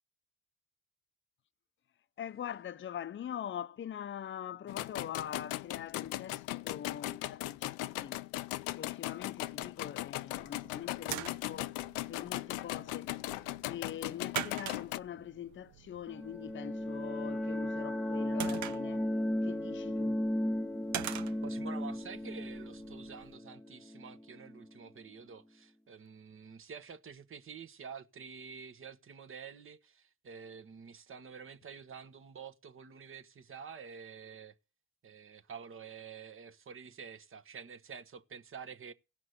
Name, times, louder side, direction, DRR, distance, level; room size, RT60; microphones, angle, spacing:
voice 1, 2.2-8.2 8.7-11.7 12.1-13.2 13.7-19.1 19.4-20.2, left 9 dB, 40° left, 0.7 m, -43 dB
sound 1, 4.7-15.0, left 17 dB, 85° left, 0.6 m, -38 dB
sound 2, 10.3-23.4, right 10 dB, 75° right, 0.8 m, -45 dB
sound 3, 16.1-24.6, left 1 dB, ahead, 0.9 m, -35 dB
voice 2, 21.4-34.5 35.0-38.9, right 6 dB, 45° right, 1.2 m, -48 dB
16.0 x 6.0 x 8.0 m
supercardioid pair, 60°, 29 cm